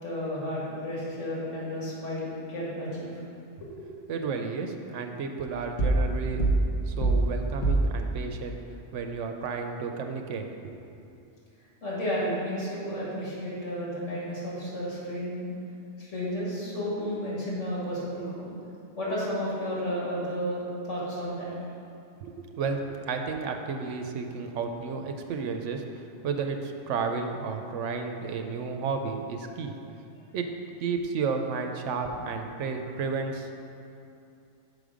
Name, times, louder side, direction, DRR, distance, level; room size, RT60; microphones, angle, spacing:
voice 1, 0.0-3.2 3.6-3.9 11.8-15.5 16.0-18.5 19.0-21.5, equal, 80° left, -7 dB, 2.3 m, -32 dB
voice 2, 4.1-8.6 8.9-10.8 22.2-29.7 30.3-30.5 30.8-33.5, right 5 dB, 80° right, 5 dB, 1.0 m, -32 dB
sound 1, 5.8-6.1 6.4-7.4 7.6-8.0, right 2 dB, 45° left, 1.3 m, -23 dB
6.5 x 5.3 x 5.0 m, 2.7 s
omnidirectional pair, 1.2 m